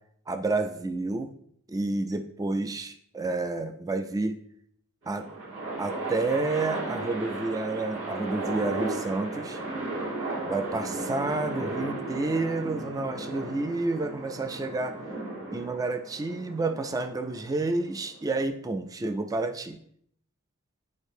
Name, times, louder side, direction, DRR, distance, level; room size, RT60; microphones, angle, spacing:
voice 1, 0.3-1.3 1.7-4.4 5.1-5.3 5.8-9.6 10.4-15.0 15.5-19.8, right 3 dB, 15° right, 8 dB, 0.3 m, -30 dB
sound 1, 5.0-18.4, right 2 dB, 60° right, 1.5 m, -35 dB
10.5 x 4.5 x 2.6 m, 0.66 s
head